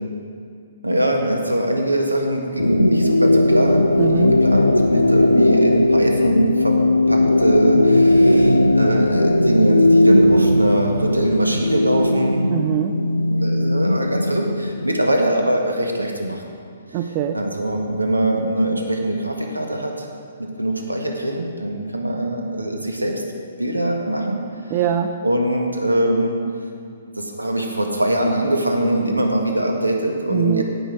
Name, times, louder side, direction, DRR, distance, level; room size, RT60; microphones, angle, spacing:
voice 1, 0.8-6.8 7.1-12.5 13.3-16.4 17.3-20.1 20.4-23.2 23.6-24.4 25.2-26.3 27.2-30.6, right 1 dB, 80° right, 2 dB, 1.5 m, -22 dB
sound 1, 2.6-15.3, left 1 dB, 80° left, 0.4 m, -17 dB
voice 2, 4.0-4.3 12.5-12.9 16.9-17.4 24.7-25.1 30.3-30.6, right 10 dB, 30° right, 7 dB, 0.4 m, -22 dB
16.5 x 6.4 x 4.8 m, 2.2 s
figure-of-eight pair, 125°, 0 cm